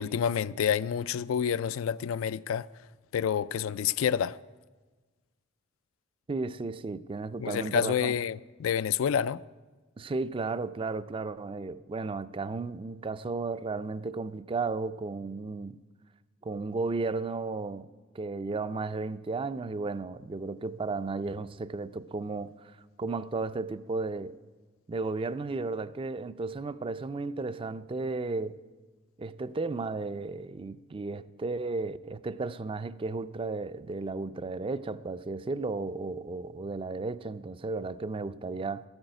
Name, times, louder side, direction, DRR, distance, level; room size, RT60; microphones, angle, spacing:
voice 1, 0.0-2.7 3.1-4.4 7.4-9.4, left 8 dB, 85° left, 0.4 m, -28 dB
voice 2, 6.3-8.1 10.0-15.8 16.4-17.9 18.1-24.4 24.9-28.6 29.2-38.8, right 3 dB, 25° right, 0.4 m, -34 dB
13.5 x 8.8 x 7.9 m
head